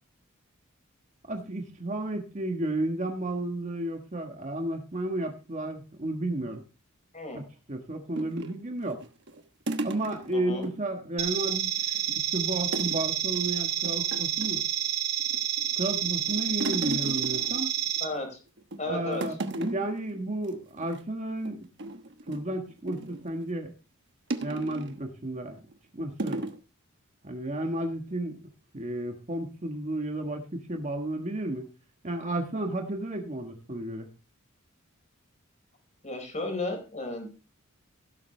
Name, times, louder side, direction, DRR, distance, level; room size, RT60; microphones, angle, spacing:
voice 1, 1.2-6.6 7.3-7.4 7.7-9.0 9.8-12.0 12.3-14.6 15.8-17.7 18.9-21.7 22.3-23.7 24.4-25.6 25.9-26.5 27.2-28.5 28.7-31.7 32.0-34.1, right 1 dB, 35° right, 4 dB, 1.4 m, -32 dB
sound 1, 8.1-10.7 11.0-11.2 11.5-12.2 12.7-13.1 13.3-13.5 13.8-14.7 15.2-15.7 16.0-18.2 18.6-18.9 19.1-20.0 20.3-20.5 20.8-21.0 21.4-23.2 24.3-25.0 25.6-25.7 26.2-26.6, right 2 dB, 55° right, 1.2 m, -36 dB
voice 2, 10.3-10.7 18.0-18.4 18.8-19.2 36.0-37.3, left 2 dB, 35° left, 4 dB, 4.3 m, -34 dB
sound 2, 11.2-18.0, right 12 dB, 90° right, 3.0 m, -29 dB
17.0 x 7.4 x 3.3 m, 0.32 s
head